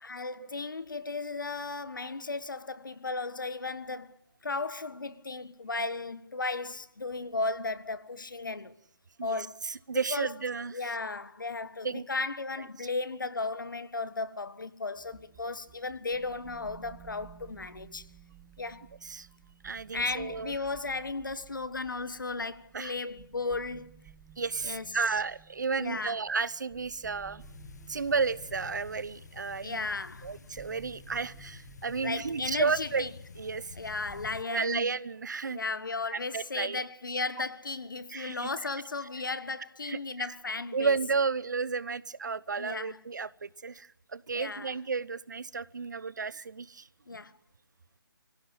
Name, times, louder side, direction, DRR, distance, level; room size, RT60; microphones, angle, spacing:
voice 1, 0.0-4.2 4.4-8.7 9.2-9.6 10.1-10.3 10.7-18.1 18.6-18.9 19.9-23.9 24.6-25.2 25.8-26.2 29.6-30.3 32.0-33.1 33.8-34.9 35.5-41.0 42.6-43.0 44.3-44.7 47.1-47.4, left 3 dB, 65° left, 1.6 m, -35 dB
voice 2, 9.2-10.8 11.8-12.0 19.0-19.3 19.6-20.5 22.7-22.9 24.4-27.4 27.9-29.9 30.2-33.0 33.4-33.8 34.5-35.6 36.1-36.8 38.1-38.5 39.8-40.3 40.7-46.9, right 5 dB, 55° right, 1.0 m, -32 dB
sound 1, 14.9-34.4, right 9 dB, 10° right, 1.2 m, -55 dB
sound 2, 27.4-34.4, left 5 dB, 50° left, 0.9 m, -49 dB
24.5 x 17.0 x 9.4 m
figure-of-eight pair, 150°, 12 cm